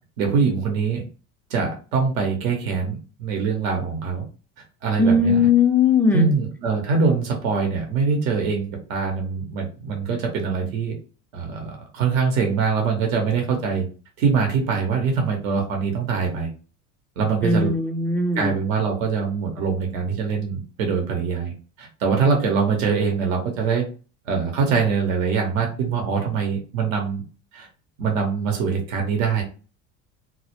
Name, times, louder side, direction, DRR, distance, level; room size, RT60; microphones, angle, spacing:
voice 1, 0.2-1.0 1.5-4.3 4.8-5.5 6.1-10.9 11.3-13.9 14.2-16.5 17.2-17.8 18.3-21.5 21.8-23.9 24.3-27.2 27.5-27.7 28.0-29.4, right 5 dB, 85° right, 0.8 m, -23 dB
voice 2, 5.0-6.3 17.4-18.6, left 4 dB, 5° left, 0.3 m, -19 dB
2.1 x 2.0 x 2.9 m
supercardioid pair, 85°, 39 cm